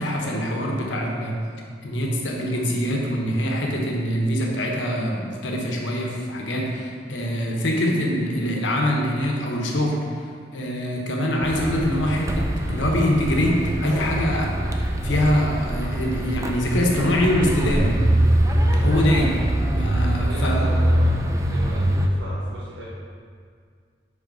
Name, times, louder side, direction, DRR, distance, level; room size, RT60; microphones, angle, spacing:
voice 1, 0.0-1.3 1.8-10.3 10.5-18.0 18.8-19.3 19.7-20.6, equal, 85° left, -1 dB, 1.0 m, -24 dB
sound 1, 11.4-22.1, right 1 dB, 15° right, 0.4 m, -23 dB
voice 2, 19.1-19.7 20.3-22.8, equal, 80° right, -8 dB, 1.0 m, -37 dB
5.1 x 4.2 x 5.5 m, 2.1 s
head